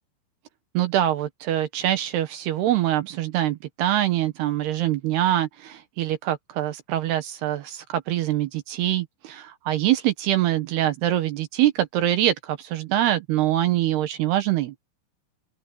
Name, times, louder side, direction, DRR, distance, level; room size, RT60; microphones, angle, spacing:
voice 1, 0.7-14.7, right 13 dB, 70° right, 3.0 m, -24 dB
omnidirectional pair, 5.1 m